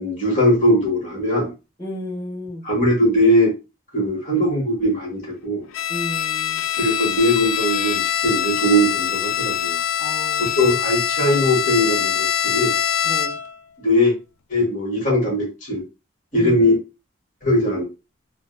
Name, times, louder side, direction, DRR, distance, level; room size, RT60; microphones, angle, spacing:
voice 1, 0.0-1.5 2.6-3.6 3.9-5.6 6.7-9.8 10.4-12.7 13.8-14.1 14.5-15.8 16.3-16.8 17.4-17.8, equal, 40° left, -3 dB, 1.6 m, -20 dB
voice 2, 1.8-2.6 5.9-6.6 10.0-10.6 13.0-13.4 16.3-16.5, left 1 dB, 20° left, -10 dB, 1.2 m, -32 dB
Bowed string instrument, 5.7-13.6, left 9 dB, 80° left, 0.3 m, -23 dB
4.0 x 2.2 x 2.5 m, 0.28 s
head